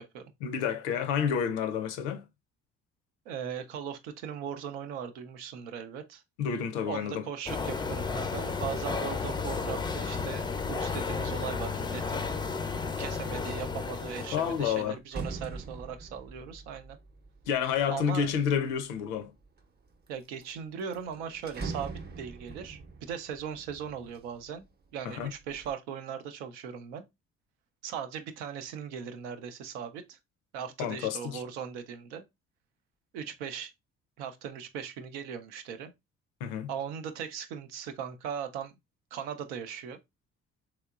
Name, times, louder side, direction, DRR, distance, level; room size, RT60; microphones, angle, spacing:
voice 1, 0.4-2.3 6.4-7.3 14.3-15.0 17.5-19.3 25.1-25.3 30.8-31.4 36.4-36.7, left 8 dB, 90° left, 0.5 m, -29 dB
voice 2, 3.3-6.2 6.9-12.3 13.0-17.0 17.9-18.3 20.1-24.7 24.9-27.0 27.8-30.2 30.5-32.2 33.1-33.7 34.2-35.9 36.7-38.7 39.1-40.0, right 7 dB, 85° right, 0.5 m, -39 dB
sound 1, 7.5-14.8, left 4 dB, 15° left, 0.3 m, -33 dB
sound 2, 13.8-18.8 19.4-20.1 20.4-20.5 20.8-24.7 25.1-25.7, right 4 dB, 30° right, 0.6 m, -43 dB
3.5 x 2.9 x 2.3 m
hypercardioid pair, 50°, 33 cm